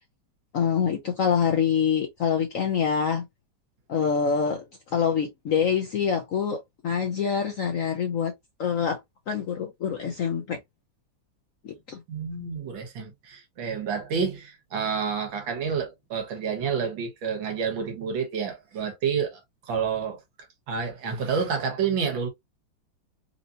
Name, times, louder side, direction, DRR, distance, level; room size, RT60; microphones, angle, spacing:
voice 1, 0.5-3.2 3.9-4.7 4.9-8.3 8.6-9.0 9.3-10.6 11.6-12.0, left 7 dB, 65° left, 0.8 m, -25 dB
voice 2, 12.1-19.4 19.7-20.2 20.7-22.3, right 6 dB, 80° right, 1.9 m, -29 dB
4.4 x 2.7 x 2.5 m
omnidirectional pair, 2.1 m